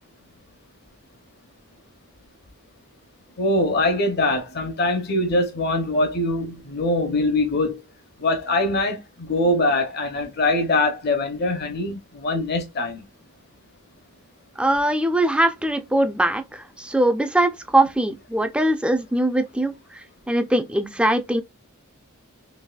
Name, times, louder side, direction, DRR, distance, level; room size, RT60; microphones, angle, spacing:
voice 1, 3.4-7.8 8.2-13.0, left 2 dB, 50° left, 0.7 m, -23 dB
voice 2, 14.6-19.7 20.3-21.4, right 1 dB, 5° right, 0.5 m, -21 dB
4.0 x 3.0 x 2.3 m
head